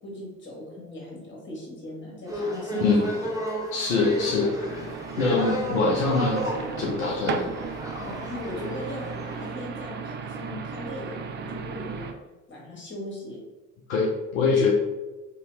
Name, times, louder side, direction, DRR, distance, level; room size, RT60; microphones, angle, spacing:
voice 1, 0.0-3.4 4.6-4.9 8.0-12.1 12.5-13.4, left 1 dB, 30° left, -3 dB, 1.5 m, -39 dB
sound 1, 2.3-9.5, equal, 10° right, 1.0 m, -33 dB
voice 2, 2.7-3.1 3.7-4.8 5.2-6.4 6.8-7.5 13.9-14.7, left 3 dB, 75° left, -3 dB, 0.6 m, -24 dB
sound 2, 4.0-12.1, right 6 dB, 30° right, 0.4 m, -36 dB
2.9 x 2.8 x 3.1 m, 1.1 s
figure-of-eight pair, 50°, 40 cm